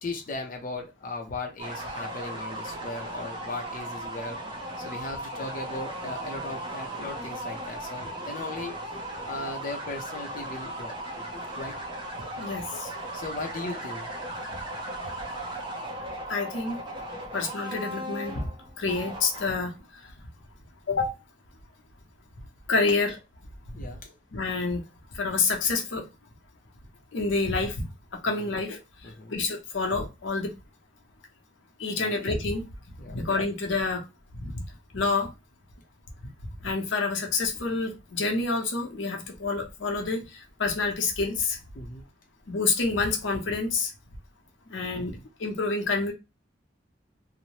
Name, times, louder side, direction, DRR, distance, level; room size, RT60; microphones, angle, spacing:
voice 1, 0.0-4.4 4.8-8.8 9.1-11.0 11.5-11.8 12.9-14.1 23.7-24.1 28.4-28.5 29.0-29.3 31.9-32.1 33.0-33.2 41.7-42.0 44.9-45.2, left 2 dB, 45° left, 0.5 m, -37 dB
sound 1, 1.6-19.7, right 1 dB, 25° right, 0.7 m, -37 dB
voice 2, 12.4-12.9 16.3-16.8 17.3-18.4 18.8-19.7 20.0-20.1 20.9-21.1 22.7-23.1 24.3-24.8 25.1-26.1 27.1-27.9 28.2-30.5 31.8-32.6 33.1-34.0 34.3-34.6 34.9-35.3 36.6-41.6 42.5-43.9 44.7-46.1, left 3 dB, 90° left, 0.7 m, -28 dB
2.7 x 2.0 x 3.0 m
head